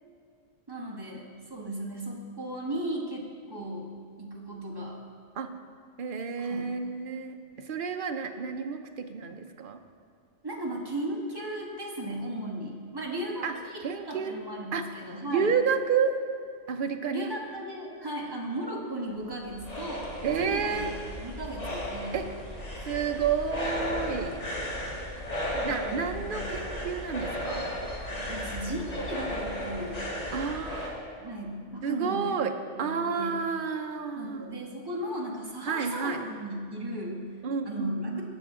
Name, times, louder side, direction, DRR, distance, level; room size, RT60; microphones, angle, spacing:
voice 1, 0.7-3.9 4.2-5.0 6.4-6.6 10.4-15.5 17.1-20.1 20.4-20.9 21.2-22.2 25.5-26.4 28.2-30.1 31.2-32.4 32.8-33.3 34.2-37.2 37.6-38.2, right 1 dB, 20° right, -2 dB, 1.3 m, -36 dB
voice 2, 6.0-9.8 13.4-13.5 13.8-14.4 14.7-14.9 15.3-16.1 16.7-17.3 20.2-20.9 22.1-22.3 22.8-24.4 25.6-27.7 30.3-30.9 31.8-32.5 32.8-34.5 35.6-36.2 37.4-38.2, right 6 dB, 55° right, 6 dB, 0.8 m, -30 dB
sound 1, 19.1-31.0, equal, 35° left, 1.3 m, -35 dB
16.5 x 6.1 x 3.7 m, 2.2 s
omnidirectional pair, 1.2 m